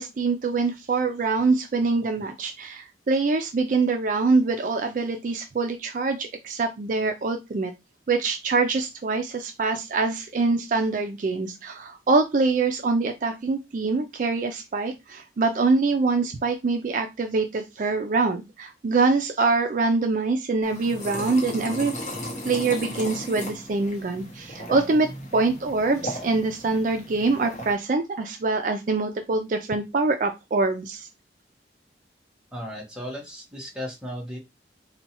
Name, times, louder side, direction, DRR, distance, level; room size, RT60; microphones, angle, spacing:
voice 1, 0.0-7.7 8.1-21.9 22.4-31.1, right 3 dB, 45° right, 6 dB, 0.4 m, -24 dB
sound 1, 20.6-27.8, equal, 40° left, 0.9 m, -36 dB
voice 2, 32.5-34.4, equal, 5° right, -1 dB, 1.0 m, -35 dB
4.2 x 2.2 x 2.9 m, 0.22 s
head